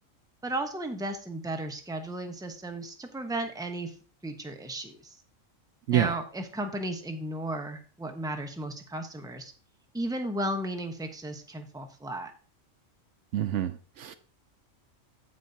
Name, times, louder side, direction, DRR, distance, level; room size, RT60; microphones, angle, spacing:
voice 1, 0.4-3.9 4.2-5.1 5.9-9.5 9.9-12.3, right 1 dB, 5° right, 5 dB, 0.8 m, -34 dB
voice 2, 13.3-14.1, right 11 dB, 70° right, 12 dB, 0.9 m, -27 dB
15.5 x 5.3 x 2.8 m, 0.38 s
omnidirectional pair, 1.4 m